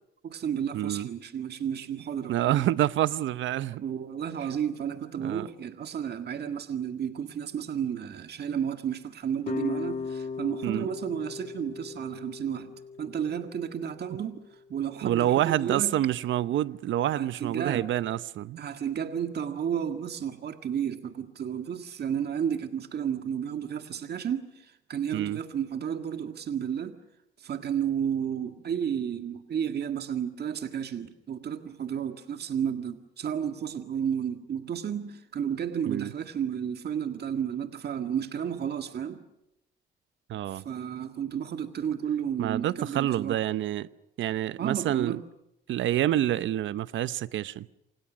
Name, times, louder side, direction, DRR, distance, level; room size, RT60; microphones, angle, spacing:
voice 1, 0.2-2.7 3.8-15.9 17.1-17.9 18.6-27.0 27.4-39.2 40.5-43.4 44.6-45.2, right 8 dB, 55° right, 1.8 m, -32 dB
voice 2, 0.7-1.1 2.3-3.8 5.2-5.5 10.6-10.9 15.0-18.6 25.1-25.4 35.9-36.1 40.3-40.7 42.4-43.9 44.2-45.2 45.7-47.7, right 12 dB, 75° right, 0.9 m, -27 dB
sound 1, 9.4-14.6, left 5 dB, 40° left, 2.0 m, -38 dB
28.5 x 27.0 x 6.3 m
cardioid pair, 90°, 20 cm